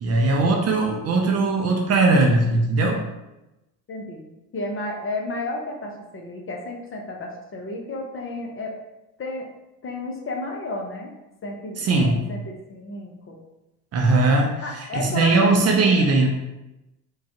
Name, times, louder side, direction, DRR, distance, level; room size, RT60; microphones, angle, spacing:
voice 1, 0.0-3.0 11.8-12.2 13.9-14.5 14.9-16.3, right 3 dB, 35° right, 1 dB, 0.6 m, -19 dB
voice 2, 3.9-8.8 9.2-9.5 9.8-11.1 11.4-13.4 14.6-16.1, left 2 dB, 25° left, 1 dB, 0.8 m, -32 dB
4.6 x 2.3 x 2.9 m, 0.96 s
hypercardioid pair, 70°, 47 cm